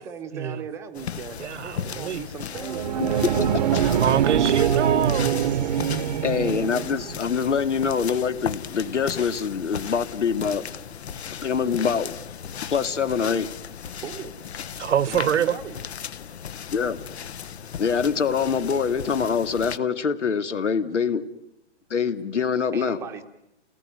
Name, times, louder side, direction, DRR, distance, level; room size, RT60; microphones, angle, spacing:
voice 1, 0.0-3.4 4.8-6.0 14.0-14.3 15.1-15.8 22.7-23.2, right 6 dB, 10° right, 0.9 m, -37 dB
sound 1, 0.9-19.8, left 8 dB, 65° left, 1.2 m, -36 dB
voice 2, 1.4-2.2 3.1-3.5 3.8-5.6 14.8-15.6, right 9 dB, 80° right, 0.9 m, -25 dB
sound 2, 2.5-7.2, right 9 dB, 40° right, 0.9 m, -24 dB
voice 3, 6.2-10.7 11.4-12.2 12.7-13.5 16.7-17.0 17.8-21.3 21.9-23.0, left 6 dB, 90° left, 2.3 m, -24 dB
30.0 x 19.0 x 9.3 m
hypercardioid pair, 165°, 35 cm